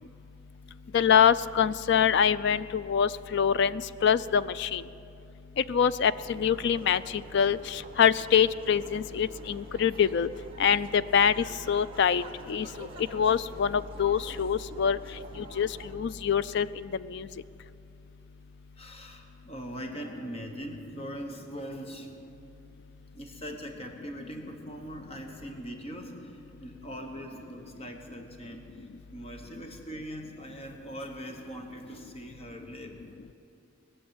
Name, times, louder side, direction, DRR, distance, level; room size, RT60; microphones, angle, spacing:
voice 1, 0.9-4.8 5.7-7.0 7.3-10.3 10.6-12.2 12.5-12.9 13.1-15.0 15.4-15.7 15.9-17.3, left 7 dB, 60° left, 16 dB, 0.4 m, -25 dB
sound 1, 6.1-15.9, right 2 dB, 25° right, 1.6 m, -49 dB
voice 2, 18.8-22.1 23.1-33.0, equal, 30° left, 3 dB, 1.3 m, -41 dB
20.5 x 7.1 x 8.9 m, 2.6 s
head